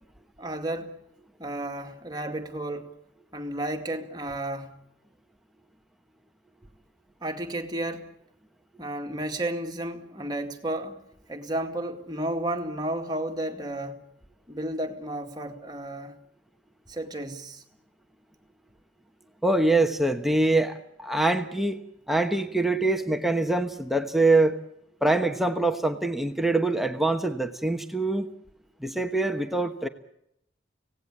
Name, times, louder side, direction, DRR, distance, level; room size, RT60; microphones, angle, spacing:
voice 1, 0.4-1.0 1.4-2.9 3.3-4.8 7.2-8.1 8.8-11.0 11.3-14.0 14.5-16.2 16.9-17.6, right 1 dB, 20° right, 2.1 m, -32 dB
voice 2, 19.4-21.8 22.1-24.6 25.0-28.3 28.8-29.9, right 2 dB, ahead, 1.1 m, -24 dB
25.5 x 18.0 x 8.7 m
head